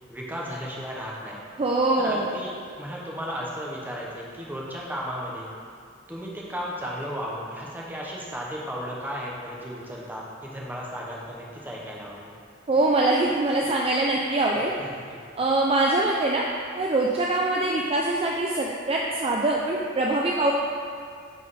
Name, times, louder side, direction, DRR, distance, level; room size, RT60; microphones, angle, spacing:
voice 1, 0.1-1.4 2.0-5.5 6.1-12.3 14.8-15.3, equal, 10° right, -4 dB, 1.1 m, -35 dB
voice 2, 1.6-2.3 12.7-14.7 15.4-16.4 16.8-20.5, right 2 dB, 30° right, -2 dB, 0.4 m, -23 dB
10.0 x 3.9 x 4.2 m, 2.2 s
head